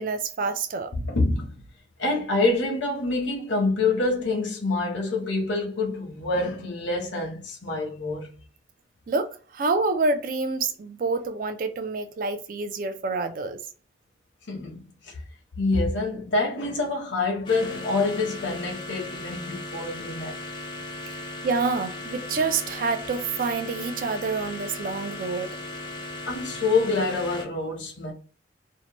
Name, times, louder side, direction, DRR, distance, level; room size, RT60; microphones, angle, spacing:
voice 1, 0.0-0.9 9.1-13.6 21.4-25.5, right 4 dB, 45° right, 0.3 m, -27 dB
voice 2, 0.9-1.6 2.0-8.3 14.5-15.2 15.6-20.4 26.3-28.1, left 3 dB, 75° left, 0.8 m, -26 dB
sound 1, 17.5-27.5, left 2 dB, 25° left, 0.4 m, -37 dB
2.7 x 2.1 x 2.9 m
head